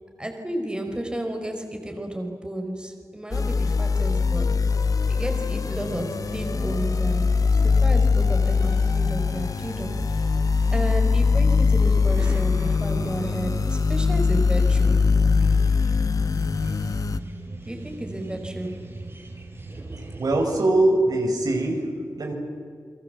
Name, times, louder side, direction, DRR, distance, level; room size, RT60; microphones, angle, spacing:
voice 1, 0.2-4.5 5.1-10.3 10.7-15.0 17.6-18.9, right 1 dB, 15° right, 4 dB, 4.3 m, -32 dB
sound 1, 3.3-17.2, left 4 dB, 60° left, 0.9 m, -22 dB
sound 2, 5.8-20.6, right 2 dB, 40° right, 4.8 m, -40 dB
voice 2, 20.2-22.3, right 2 dB, 75° right, 2 dB, 4.9 m, -22 dB
30.0 x 22.5 x 7.9 m, 2.2 s
wide cardioid pair, 80°, 7 cm